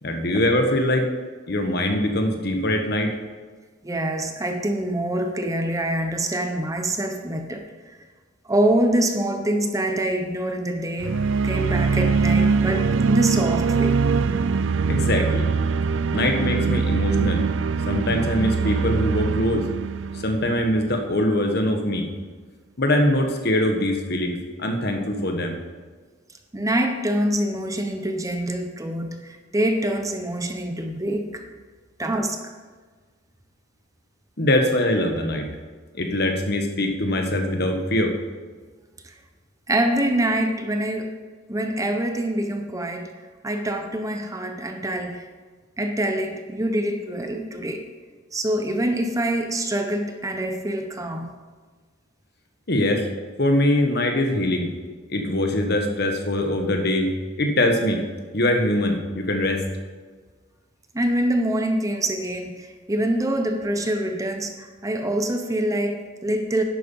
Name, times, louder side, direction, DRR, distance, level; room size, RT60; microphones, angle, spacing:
voice 1, 0.0-1.1 1.5-3.2 14.9-15.5 16.1-17.5 17.9-19.7 20.2-22.1 22.8-25.6 34.4-35.5 35.9-38.1 52.7-53.0 53.4-54.7 55.1-57.1 57.4-58.0 58.3-59.6, left 1 dB, 50° left, 4 dB, 1.4 m, -22 dB
voice 2, 3.8-8.0 8.4-11.2 11.4-14.0 26.5-31.4 32.0-32.4 39.0-39.1 39.7-41.2 41.5-43.1 43.4-45.3 45.8-47.8 48.3-51.3 60.9-66.6, right 1 dB, 15° right, 5 dB, 0.8 m, -25 dB
sound 1, 11.0-21.0, right 5 dB, 70° right, 0.4 m, -22 dB
11.0 x 8.3 x 5.5 m, 1.4 s
head